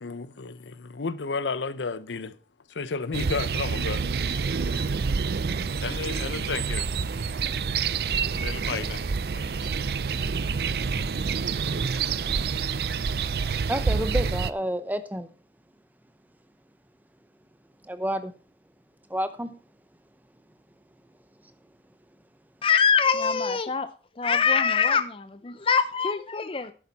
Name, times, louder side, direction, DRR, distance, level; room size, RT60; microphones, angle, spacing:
voice 1, 0.0-2.4 2.7-4.0 4.5-4.6 5.8-6.9 8.3-9.0 9.3-9.7, left 4 dB, 90° left, 0.7 m, -32 dB
sound 1, 3.1-14.5, right 5 dB, 60° right, 0.5 m, -27 dB
voice 2, 13.7-15.3 17.8-18.3 19.1-19.5, equal, 10° right, 0.8 m, -29 dB
voice 3, 22.6-23.9 24.2-26.7, left 6 dB, 30° left, 0.5 m, -23 dB
11.0 x 8.9 x 4.1 m
head